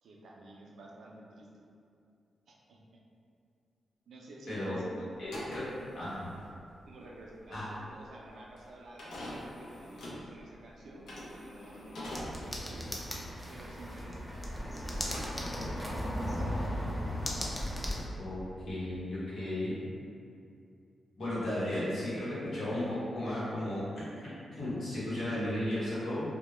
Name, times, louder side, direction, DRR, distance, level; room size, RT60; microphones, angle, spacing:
voice 1, 0.0-1.6 2.5-3.0 4.1-5.1 5.4-5.8 6.8-12.8 13.5-16.0, right 1 dB, 80° right, -3 dB, 0.4 m, -51 dB
voice 2, 4.5-4.8 5.2-5.6 5.9-6.3 7.5-7.7 18.2-18.4 18.7-19.7 21.2-26.3, left 1 dB, 65° left, -10 dB, 0.9 m, -35 dB
sound 1, 5.2-14.6 14.9-15.9, left 1 dB, 85° left, 0.5 m, -46 dB
sound 2, 12.1-18.1, equal, 10° left, 0.4 m, -36 dB
2.1 x 2.0 x 3.0 m, 2.5 s
cardioid pair, 55°, 0 cm